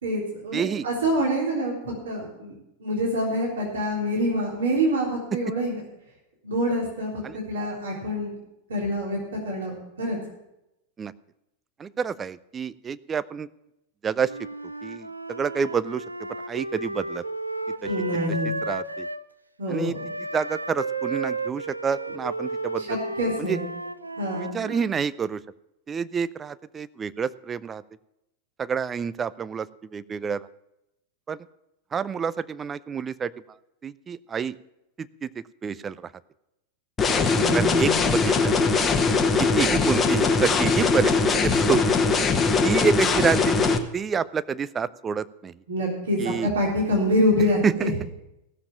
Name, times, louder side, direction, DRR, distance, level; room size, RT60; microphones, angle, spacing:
voice 1, 0.0-1.7 2.0-5.8 6.4-8.3 8.7-10.2 17.8-18.6 19.6-20.1 22.8-23.6 24.2-24.6 37.3-38.1 45.7-47.9, equal, 65° right, -3 dB, 3.6 m, -26 dB
voice 2, 0.5-0.9 7.2-7.3 11.0-11.1 11.8-13.5 14.0-14.3 14.8-16.0 16.5-17.2 18.7-19.1 19.7-20.0 20.3-23.0 23.5-23.6 24.3-25.4 25.9-27.8 28.6-29.7 29.9-30.5 31.3-31.4 31.9-33.3 33.8-34.6 35.0-35.3 35.6-36.1 37.4-38.5 39.4-41.1 41.4-41.8 42.6-43.6 43.9-45.5 46.2-46.5 47.6-47.7, right 6 dB, 20° right, 17 dB, 0.4 m, -28 dB
Wind instrument woodwind instrument, 14.2-19.2 19.9-24.9, right 2 dB, 80° right, 0.5 m, -33 dB
sound 1, 37.0-43.8, left 4 dB, 20° left, 1.1 m, -21 dB
16.0 x 7.2 x 7.4 m, 0.88 s
figure-of-eight pair, 90°, 0 cm